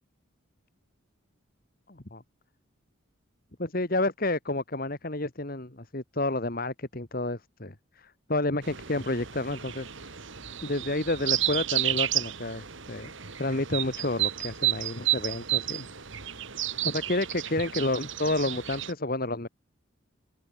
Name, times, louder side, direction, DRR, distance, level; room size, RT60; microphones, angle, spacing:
voice 1, 1.9-2.2 3.6-9.9 10.6-13.1 13.4-15.9 16.8-19.5, left 2 dB, 45° left, 1.8 m, -30 dB
sound 1, 8.6-18.9, right 13 dB, 65° right, 1.8 m, -32 dB
head